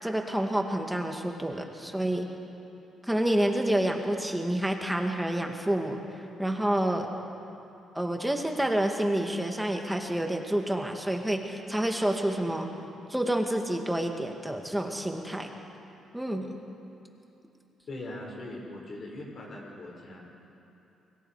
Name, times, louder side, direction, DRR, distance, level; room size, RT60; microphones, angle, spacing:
voice 1, 0.0-2.3 3.0-6.0 6.4-7.1 7.9-12.7 13.1-15.5 16.1-16.5, right 1 dB, 5° right, 3 dB, 2.3 m, -28 dB
voice 2, 17.9-20.2, left 1 dB, 50° left, -1 dB, 6.3 m, -40 dB
30.0 x 22.0 x 5.1 m, 2.8 s
cardioid pair, 90°, 0 cm